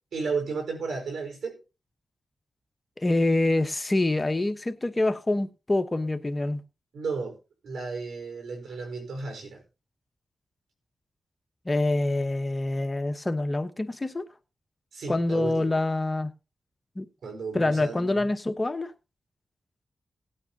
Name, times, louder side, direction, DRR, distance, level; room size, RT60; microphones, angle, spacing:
voice 1, 0.1-1.6 6.9-7.4 7.6-9.6 14.9-15.7 17.2-18.2, right 4 dB, 90° right, 4.5 m, -33 dB
voice 2, 3.0-6.6 11.6-14.3 15.1-16.3 17.0-17.1 17.5-18.9, left 2 dB, 30° left, 1.1 m, -26 dB
18.0 x 9.0 x 2.8 m
cardioid pair, 50°, 0 cm